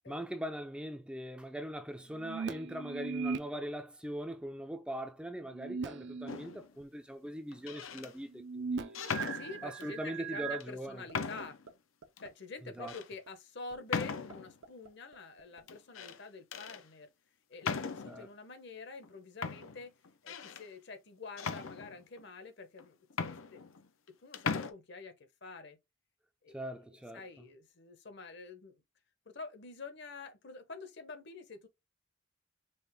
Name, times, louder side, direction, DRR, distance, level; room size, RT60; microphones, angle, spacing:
voice 1, 0.1-9.0 9.6-11.0 12.6-12.9 18.1-18.3 26.5-27.2, equal, 5° right, 0.4 m, -41 dB
sound 1, 2.1-3.4 5.5-6.4 6.8-6.9 8.3-10.6, right 5 dB, 60° right, 0.5 m, -39 dB
sound 2, 6.3-6.7 7.5-8.1 8.9-9.9 10.6-10.7 11.1-11.7 12.2-12.3 12.9-13.1 13.9-14.6 15.7-16.2 16.5-16.8 17.6-18.2 19.0-19.1 19.4-20.7 21.4-22.2 22.8-22.9 23.1-24.1 24.3-24.7, left 5 dB, 85° left, 0.7 m, -38 dB
voice 2, 9.3-11.6 12.2-17.1 17.5-19.9 20.2-23.3 23.5-23.6 24.1-25.1 25.4-25.8 26.4-26.6 27.1-28.8 29.3-31.7, left 4 dB, 60° left, 0.9 m, -47 dB
sound 3, 10.8-11.1 11.4-11.7 12.0-12.3 12.7-12.9 13.3-13.4 13.7-14.4 14.6-15.6, right 4 dB, 90° right, 1.0 m, -51 dB
5.4 x 2.5 x 3.5 m
head